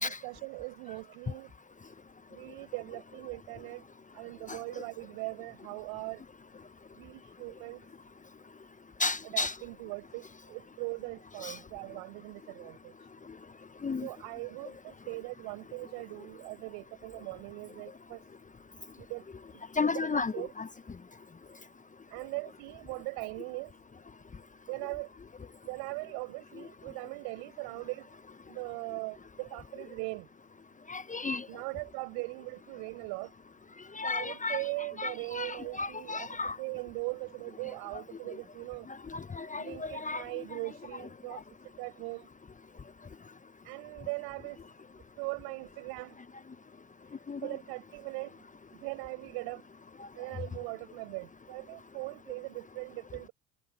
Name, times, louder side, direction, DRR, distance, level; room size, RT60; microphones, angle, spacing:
voice 1, 0.0-1.5 2.3-3.8 4.1-6.2 7.0-7.8 9.2-12.9 14.0-18.2 19.0-19.2 19.8-20.5 22.1-23.7 24.7-25.1 25.6-28.1 28.5-30.3 31.5-33.3 34.0-38.9 39.6-41.4 41.8-42.3 43.7-44.6 45.2-46.1 47.4-48.4 48.8-49.6 50.2-53.3, right 31 dB, 65° right, 6.8 m, -40 dB
voice 2, 4.5-4.8 9.0-9.6 11.4-11.6 13.8-14.1 19.8-20.7 30.9-31.5 33.9-34.6 35.0-36.6 39.1-40.4 47.3-47.6 50.0-50.1, left 4 dB, 20° left, 1.1 m, -33 dB
hypercardioid pair, 70°, 42 cm